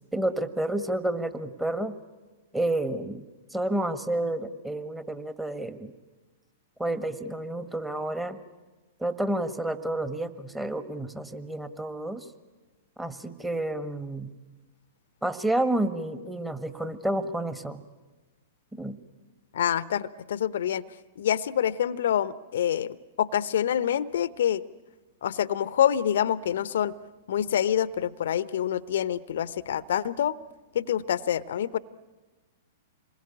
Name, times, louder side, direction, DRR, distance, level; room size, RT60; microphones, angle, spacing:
voice 1, 0.1-2.0 2.5-3.2 3.5-5.9 6.8-8.4 9.0-12.2 13.0-14.3 15.2-17.8 18.7-19.0, right 1 dB, 5° right, 10 dB, 1.6 m, -30 dB
voice 2, 19.5-20.8 21.2-24.6 25.2-26.9 27.3-30.4 30.7-31.8, left 10 dB, 60° left, 18 dB, 0.8 m, -26 dB
27.0 x 21.0 x 10.0 m, 1.3 s
figure-of-eight pair, 105°, 0 cm